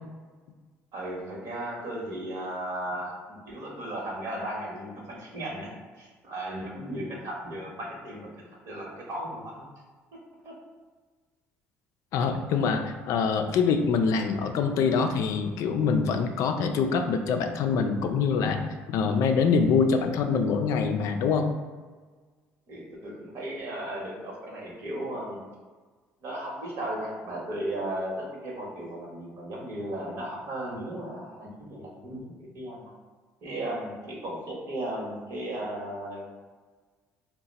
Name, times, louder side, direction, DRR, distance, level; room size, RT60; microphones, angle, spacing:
voice 1, 0.9-9.6 10.4-10.6 22.7-25.4 26.2-32.9 33.4-36.3, right 1 dB, 60° right, -2 dB, 1.0 m, -36 dB
voice 2, 12.1-18.6 18.9-21.5, left 5 dB, 70° left, 6 dB, 0.3 m, -25 dB
2.8 x 2.1 x 4.0 m, 1.4 s
supercardioid pair, 80°, 5 cm